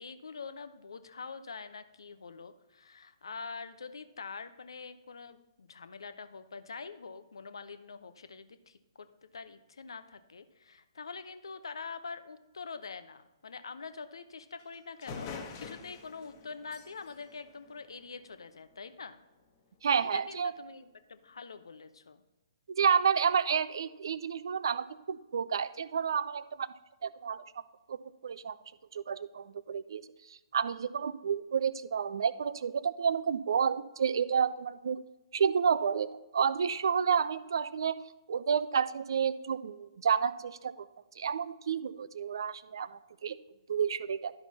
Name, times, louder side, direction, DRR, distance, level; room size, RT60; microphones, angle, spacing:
voice 1, 0.0-9.1 9.3-19.2 20.0-22.2, left 5 dB, 65° left, 11 dB, 0.7 m, -45 dB
sound 1, 14.6-14.7 15.0-18.5, left 5 dB, 30° left, 1.1 m, -46 dB
voice 2, 19.8-20.5 22.7-26.7 27.0-27.4 27.9-28.0 28.2-28.6 28.9-30.0 30.5-35.0 35.3-38.0 38.3-40.7 41.2-43.4 43.7-44.3, right 7 dB, 55° right, 16 dB, 0.4 m, -30 dB
12.0 x 5.9 x 4.1 m, 1.1 s
figure-of-eight pair, 125°, 3 cm